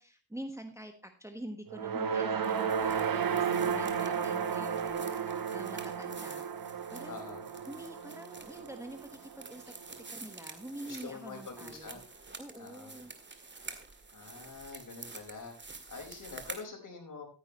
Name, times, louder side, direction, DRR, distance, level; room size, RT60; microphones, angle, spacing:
voice 1, 0.0-7.4 7.7-9.7 10.1-12.0 12.4-13.1, right 1 dB, 5° right, 6 dB, 1.3 m, -46 dB
sound 1, 1.7-10.1, right 7 dB, 55° right, 1.3 m, -33 dB
sound 2, 2.4-16.6, right 3 dB, 25° right, 2.0 m, -49 dB
voice 2, 7.1-7.5 10.8-12.0 12.5-13.0 14.1-17.3, left 4 dB, 50° left, 2 dB, 4.8 m, -46 dB
14.0 x 9.9 x 3.0 m, 0.37 s
cardioid pair, 75°, 41 cm